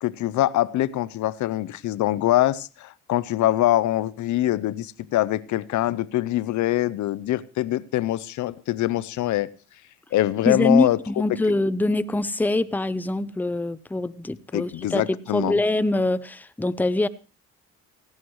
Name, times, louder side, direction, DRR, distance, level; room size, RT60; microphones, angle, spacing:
voice 1, 0.0-9.5 10.1-11.0 14.5-15.6, left 14 dB, 75° left, 0.6 m, -24 dB
voice 2, 10.5-17.1, left 2 dB, 5° left, 0.6 m, -24 dB
17.5 x 16.0 x 3.1 m
cardioid pair, 90°, 30 cm